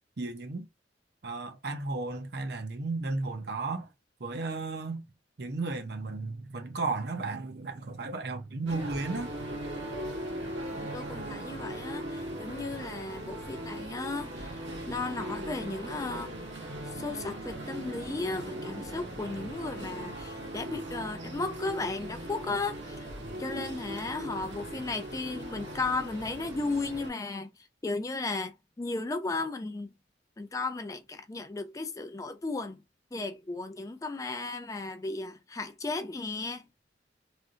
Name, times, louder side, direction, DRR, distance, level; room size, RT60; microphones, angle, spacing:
voice 1, 0.2-0.7 1.2-3.9 4.2-5.0 5.4-9.3, right 3 dB, 60° right, 0.8 m, -34 dB
sound 1, 8.7-27.1, right 1 dB, 80° right, 1.7 m, -39 dB
voice 2, 10.8-16.3 16.8-23.1 23.4-29.9 30.4-32.8 33.1-36.7, left 3 dB, 20° left, 0.4 m, -35 dB
3.3 x 2.7 x 2.4 m
head